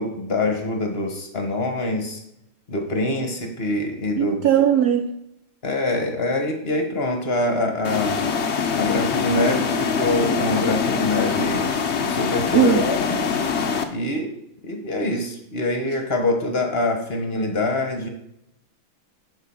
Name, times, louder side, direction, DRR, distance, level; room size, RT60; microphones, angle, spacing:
voice 1, 0.0-2.2 2.7-4.5 5.6-8.2 8.7-11.7 12.0-13.2 13.9-14.3 14.6-18.1, left 2 dB, 35° left, 4 dB, 1.2 m, -24 dB
voice 2, 4.2-5.1 12.5-12.9, right 9 dB, 80° right, 7 dB, 0.8 m, -18 dB
sound 1, 7.8-13.8, left 6 dB, 70° left, 0.6 m, -23 dB
11.5 x 4.3 x 5.5 m, 0.79 s
omnidirectional pair, 2.3 m